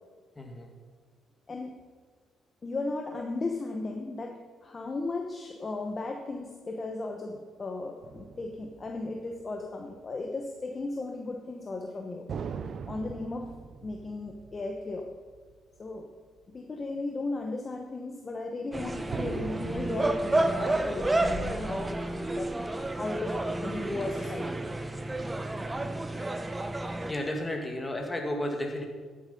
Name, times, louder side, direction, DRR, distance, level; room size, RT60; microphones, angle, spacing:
voice 1, 0.4-0.7 27.0-28.8, left 1 dB, 20° left, 3 dB, 2.1 m, -33 dB
voice 2, 2.6-12.3 12.9-13.5 13.8-15.1 15.8-16.1 16.5-22.5 23.0-24.7, left 2 dB, 35° left, 3 dB, 1.0 m, -35 dB
sound 1, 8.0-9.9 12.3-16.0 16.4-16.5 19.1-22.8, right 6 dB, 55° right, 0.5 m, -42 dB
sound 2, 18.7-27.1, right 2 dB, 15° right, 0.8 m, -30 dB
11.5 x 8.0 x 5.4 m, 1.5 s
cardioid pair, 90°, 0 cm